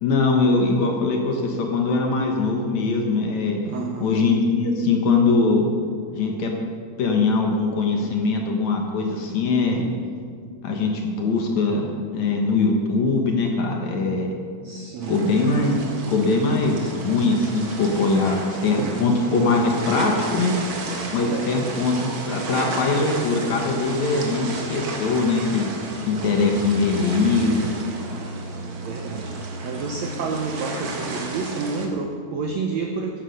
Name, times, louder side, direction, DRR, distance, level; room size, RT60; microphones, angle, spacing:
voice 1, 0.0-3.6 4.0-5.7 6.1-6.5 7.0-9.9 10.6-11.9 12.1-14.3 15.1-15.8 16.1-20.5 21.1-25.7 26.1-27.7, left 3 dB, 60° left, 2 dB, 2.2 m, -21 dB
voice 2, 3.7-4.1 14.6-15.2 21.3-21.5 28.8-33.2, right 4 dB, 75° right, 3 dB, 1.6 m, -30 dB
sound 1, 15.0-31.9, right 3 dB, 50° right, 1.5 m, -33 dB
13.5 x 9.8 x 6.5 m, 2.2 s
omnidirectional pair, 4.2 m